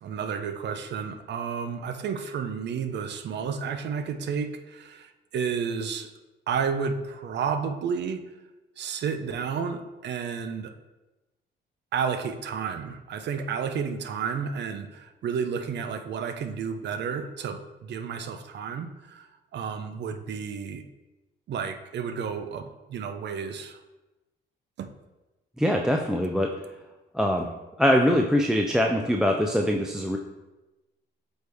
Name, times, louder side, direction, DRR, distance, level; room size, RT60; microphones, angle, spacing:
voice 1, 0.0-6.1 6.5-8.3 8.8-10.7 11.9-20.8 21.5-23.8 24.8-24.9, right 6 dB, 60° right, 9 dB, 0.6 m, -31 dB
voice 2, 25.6-26.5 27.1-27.5 27.8-30.2, equal, 5° right, 2 dB, 0.4 m, -23 dB
7.9 x 3.4 x 3.5 m, 1.1 s
cardioid pair, 90°, 20 cm